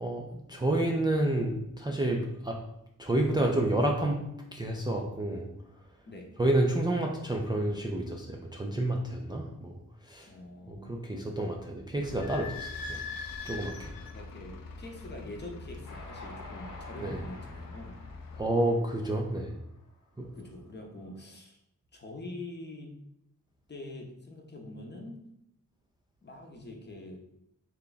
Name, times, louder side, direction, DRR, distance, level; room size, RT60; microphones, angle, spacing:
voice 1, 0.0-2.6 3.0-4.2 4.5-5.5 6.4-9.8 10.0-10.3 10.7-13.0 13.4-13.9 17.0-17.2 18.4-19.5 20.2-20.3, right 1 dB, 15° right, 0 dB, 0.3 m, -29 dB
voice 2, 10.2-11.3 14.1-18.0 20.3-21.6 21.9-23.0 23.7-25.2 26.2-27.2, left 2 dB, 30° left, 1 dB, 0.7 m, -44 dB
Idling / Squeak, 12.0-18.4, left 4 dB, 85° left, 0.5 m, -42 dB
Train, 15.8-20.2, left 2 dB, 65° left, 0.9 m, -49 dB
3.3 x 2.3 x 3.9 m, 0.80 s
wide cardioid pair, 75°, 33 cm